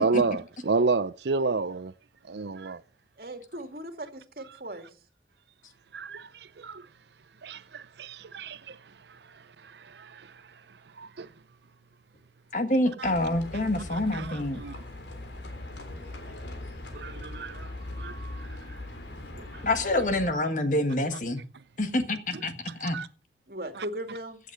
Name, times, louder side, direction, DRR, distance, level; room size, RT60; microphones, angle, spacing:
voice 1, 0.0-1.9 2.3-2.8 5.9-6.9 7.4-8.8 9.1-10.4 11.0-11.3 13.0-13.1 13.9-14.7 16.9-18.8 19.4-19.6 22.3-23.1 23.8-23.9, right 4 dB, 75° right, 0.6 m, -32 dB
voice 2, 3.2-4.9 23.5-24.4, right 1 dB, 55° right, 2.3 m, -38 dB
voice 3, 12.5-14.6 19.6-21.4 21.8-22.5 22.8-23.0, left 1 dB, 45° left, 1.6 m, -27 dB
Livestock farm animals working animals, 13.0-20.3, left 1 dB, 80° left, 3.4 m, -40 dB
15.5 x 8.4 x 6.8 m
head